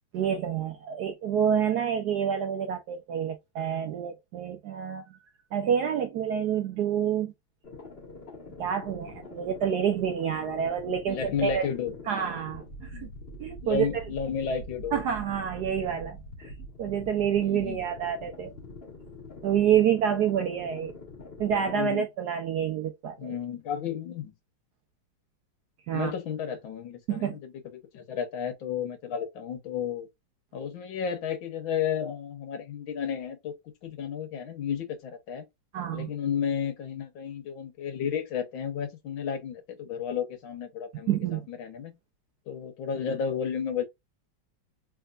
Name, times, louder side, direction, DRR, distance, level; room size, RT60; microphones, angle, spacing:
voice 1, 0.1-5.0 5.5-7.3 8.6-11.7 12.1-13.1 13.4-13.9 14.9-16.5 16.8-18.5 19.4-20.9 21.4-23.4 25.9-26.1 27.1-27.4 35.7-36.1 41.1-41.5, right 8 dB, 75° right, 0.9 m, -28 dB
sound 1, 7.6-21.8, left 1 dB, 30° left, 1.6 m, -44 dB
voice 2, 11.1-12.0 12.9-13.1 13.6-15.0 17.4-17.8 21.6-22.0 23.2-24.3 25.9-30.1 30.5-33.5 33.8-35.4 35.9-41.2 41.5-42.0 42.5-43.9, left 7 dB, 70° left, 1.7 m, -32 dB
3.5 x 3.3 x 2.4 m
omnidirectional pair, 2.2 m